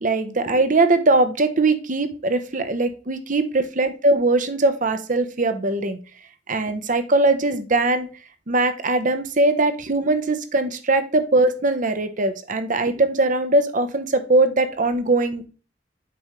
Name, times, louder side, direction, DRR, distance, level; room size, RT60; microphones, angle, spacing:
voice 1, 0.0-6.0 6.5-8.1 8.5-15.4, right 2 dB, 45° right, 9 dB, 0.9 m, -21 dB
7.9 x 5.3 x 3.2 m, 0.35 s
head